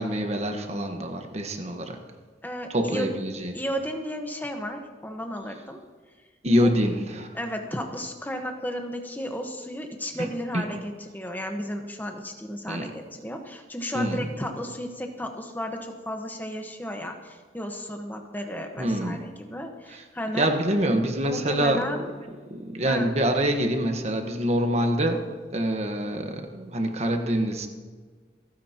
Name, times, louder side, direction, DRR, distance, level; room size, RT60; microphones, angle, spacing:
voice 1, 0.0-2.0 2.7-3.5 6.4-7.3 10.5-10.6 12.7-12.9 13.9-14.3 18.8-19.2 19.9-20.0 20.3-22.0 22.5-27.7, equal, 40° right, 5 dB, 1.3 m, -25 dB
voice 2, 2.4-3.1 3.5-5.8 6.6-6.7 7.3-20.5 21.2-22.1 22.8-23.1, equal, 10° left, 4 dB, 1.2 m, -33 dB
28.0 x 9.4 x 3.0 m, 1.5 s
head